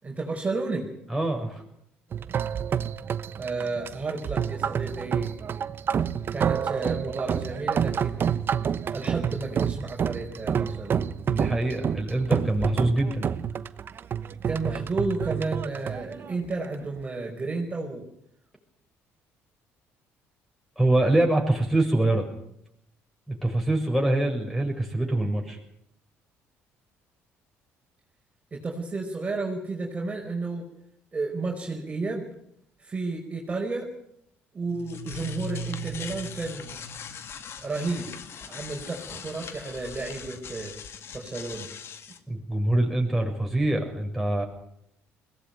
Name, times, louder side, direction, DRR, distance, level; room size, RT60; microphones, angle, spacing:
voice 1, 0.0-0.9 3.4-5.3 6.3-8.3 8.9-11.1 14.4-18.0 28.5-30.7 31.1-32.2 32.8-33.9 34.5-36.7 37.6-38.2 38.4-40.7 41.1-41.7, right 3 dB, 25° right, 0 dB, 4.9 m, -32 dB
voice 2, 1.1-1.6 11.3-13.3 20.8-22.3 23.3-25.6 42.3-44.4, right 1 dB, ahead, 4 dB, 7.0 m, -24 dB
sound 1, 2.1-17.0, right 8 dB, 45° right, 1.0 m, -29 dB
sound 2, 34.6-42.2, left 3 dB, 55° left, 2.1 m, -39 dB
21.5 x 18.0 x 9.3 m, 0.75 s
cardioid pair, 100°, 5 cm